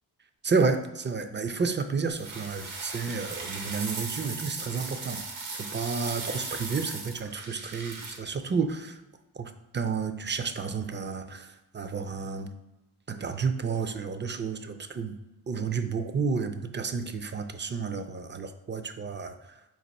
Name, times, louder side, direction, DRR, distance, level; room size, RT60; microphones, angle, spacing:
voice 1, 0.4-9.0 9.4-12.5 13.1-15.1 15.5-19.3, right 5 dB, 25° right, 9 dB, 0.3 m, -31 dB
sound 1, 2.1-8.2, right 3 dB, 85° right, 0.9 m, -37 dB
5.3 x 2.5 x 4.1 m, 1.0 s
cardioid pair, 65°, 48 cm